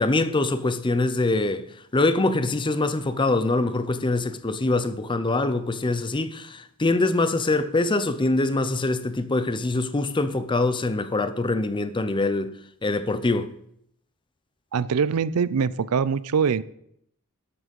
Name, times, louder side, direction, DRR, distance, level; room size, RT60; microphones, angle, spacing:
voice 1, 0.0-1.7 1.9-12.5 12.8-13.5, left 2 dB, 20° left, 0.6 m, -24 dB
voice 2, 14.7-16.6, right 6 dB, 80° right, 0.5 m, -23 dB
12.5 x 6.3 x 5.3 m
head